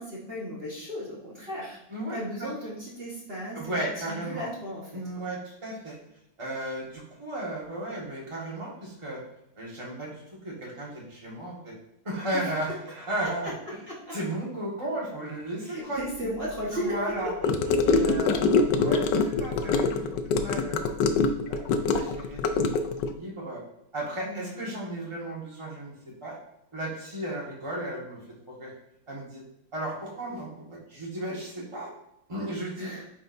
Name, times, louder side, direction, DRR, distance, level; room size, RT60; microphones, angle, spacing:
voice 1, 0.0-1.8 2.1-4.9 12.3-12.5 13.4-13.5 13.9-14.1 15.6-17.0 17.4-18.2 24.2-24.6 32.8-33.1, equal, 35° right, -6 dB, 1.3 m, -36 dB
voice 2, 1.9-2.5 3.5-4.5 4.9-5.9 6.4-9.2 9.6-11.7 12.0-13.8 14.1-16.3 16.7-17.3 17.8-21.0 21.5-23.6 23.9-25.9 26.2-26.4 26.7-28.2 28.5-28.7 29.1-29.4 29.7-31.9 32.3-32.9, right 1 dB, 15° right, -4 dB, 1.5 m, -35 dB
Gurgling / Car passing by / Sink (filling or washing), 17.4-23.1, left 4 dB, 75° left, 1.0 m, -24 dB
8.8 x 4.5 x 2.6 m, 0.81 s
omnidirectional pair, 2.2 m